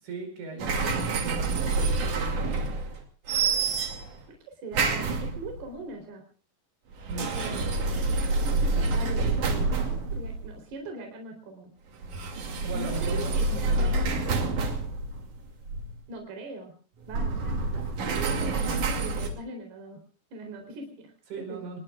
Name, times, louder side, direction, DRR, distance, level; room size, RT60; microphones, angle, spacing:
voice 1, 0.0-2.8 7.1-7.6 12.6-14.1 21.3-21.8, right 3 dB, 85° right, 5 dB, 7.4 m, -39 dB
sound 1, 0.6-3.0 3.3-4.2 4.7-5.7 6.9-10.5 12.0-16.0 17.0-19.3, right 3 dB, 50° right, 3.6 m, -28 dB
voice 2, 4.3-6.2 7.1-7.6 8.1-11.7 12.7-14.1 16.1-16.7 17.1-17.6 18.1-20.0 20.3-21.1 21.5-21.7, right 2 dB, 65° right, 3 dB, 5.8 m, -41 dB
28.5 x 20.0 x 2.5 m, 0.40 s
omnidirectional pair, 5.0 m